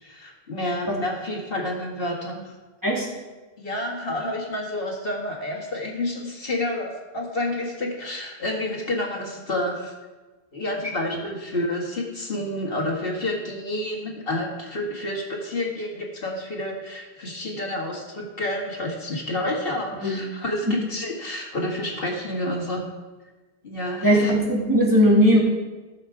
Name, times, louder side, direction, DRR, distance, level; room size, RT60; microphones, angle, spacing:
voice 1, 0.0-2.5 3.6-9.9 10.5-22.8 23.6-24.3, left 1 dB, 60° left, -1 dB, 1.9 m, -29 dB
voice 2, 24.0-25.4, equal, 20° right, -5 dB, 2.5 m, -18 dB
15.5 x 6.7 x 4.7 m, 1.2 s
omnidirectional pair, 1.1 m